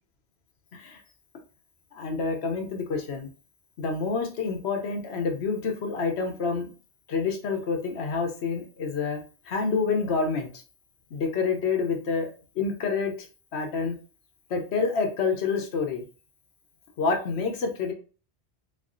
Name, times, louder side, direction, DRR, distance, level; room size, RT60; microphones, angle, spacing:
voice 1, 1.9-3.3 3.8-6.7 7.1-10.5 11.1-13.3 13.5-14.0 14.5-16.0 17.0-17.9, left 4 dB, 80° left, 4 dB, 1.0 m, -28 dB
3.5 x 3.2 x 2.5 m, 0.37 s
omnidirectional pair, 1.1 m